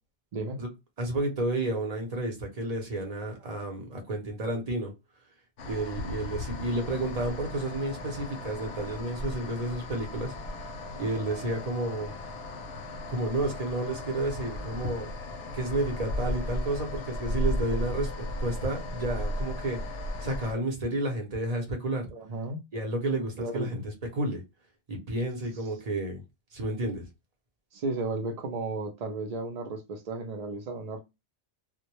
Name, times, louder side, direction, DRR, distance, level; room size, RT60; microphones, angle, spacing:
voice 1, 0.3-0.6 22.1-22.6 23.4-23.8 27.7-31.0, right 2 dB, 70° right, 0.3 m, -34 dB
voice 2, 1.0-4.9 5.6-10.3 11.0-12.1 13.1-15.1 15.5-19.8 20.2-22.1 22.7-24.4 24.9-26.2 26.5-27.1, right 1 dB, 40° right, 0.7 m, -31 dB
sound 1, 5.6-20.5, left 1 dB, 70° left, 0.8 m, -35 dB
2.1 x 2.1 x 2.9 m
omnidirectional pair, 1.2 m